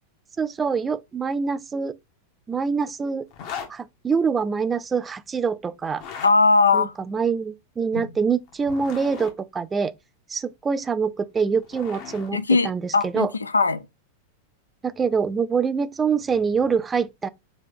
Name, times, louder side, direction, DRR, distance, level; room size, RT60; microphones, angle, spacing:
voice 1, 0.4-1.9 2.5-3.3 3.7-6.0 6.7-9.9 10.3-12.4 12.6-13.3 14.8-17.3, right 5 dB, 15° right, 0.3 m, -25 dB
sound 1, 3.3-3.7 5.9-6.3 8.5-9.3 11.2-12.3, left 7 dB, 45° left, 0.8 m, -37 dB
voice 2, 6.2-6.9 7.9-8.0 12.3-13.8, left 4 dB, 75° left, 0.3 m, -20 dB
4.1 x 2.8 x 3.5 m
figure-of-eight pair, 90°, 0 cm